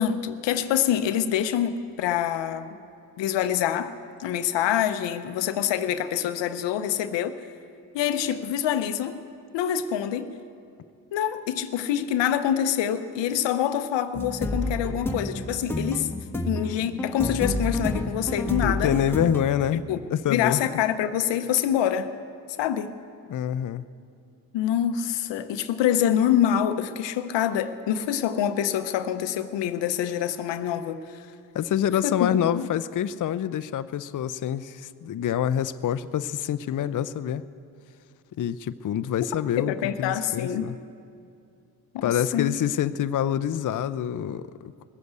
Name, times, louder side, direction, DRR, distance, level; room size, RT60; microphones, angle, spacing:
voice 1, 0.0-2.7 3.2-7.4 7.9-9.2 9.5-10.4 11.1-16.1 16.5-18.9 19.9-20.0 20.3-22.1 22.6-22.9 24.5-31.2 32.0-32.3 32.5-32.7 39.6-40.7 41.9-42.6, left 10 dB, 85° left, 11 dB, 0.8 m, -26 dB
sound 1, 14.1-19.4, left 1 dB, 5° left, 1.5 m, -29 dB
voice 2, 18.6-20.6 23.3-23.8 31.5-37.4 38.4-40.8 42.0-44.8, left 10 dB, 45° left, 13 dB, 0.6 m, -26 dB
20.0 x 8.1 x 8.0 m, 2.4 s
supercardioid pair, 60°, 42 cm